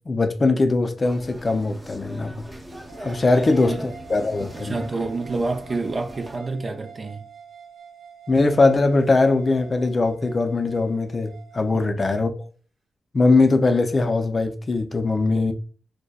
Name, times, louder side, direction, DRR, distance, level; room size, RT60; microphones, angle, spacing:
voice 1, 0.1-2.4 3.0-4.8 8.3-12.3 13.1-15.5, left 3 dB, 45° left, 0.4 m, -21 dB
sound 1, 1.0-6.4, equal, 20° right, 0.7 m, -40 dB
sound 2, 2.9-11.9, right 7 dB, 85° right, 0.8 m, -45 dB
voice 2, 4.5-7.2 11.7-12.3 15.3-15.5, right 3 dB, 50° right, 0.4 m, -29 dB
2.7 x 2.1 x 2.2 m
supercardioid pair, 50°, 0 cm